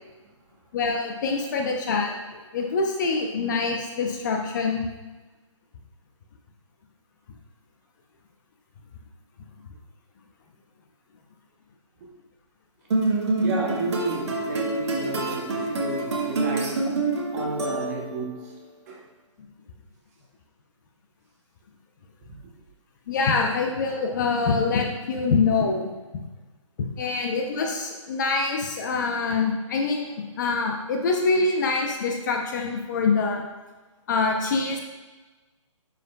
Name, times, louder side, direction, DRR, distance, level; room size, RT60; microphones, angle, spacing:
voice 1, 0.7-4.9 23.1-25.8 27.0-33.4 34.1-34.8, left 4 dB, 35° left, 2 dB, 0.7 m, -25 dB
sound 1, 12.9-18.3, right 2 dB, 60° right, 1.3 m, -26 dB
voice 2, 13.4-17.0 17.3-18.6 18.9-19.1 22.3-22.4, right 3 dB, 30° right, -1 dB, 1.2 m, -32 dB
8.9 x 5.0 x 2.3 m, 1.2 s
hypercardioid pair, 155°, 17 cm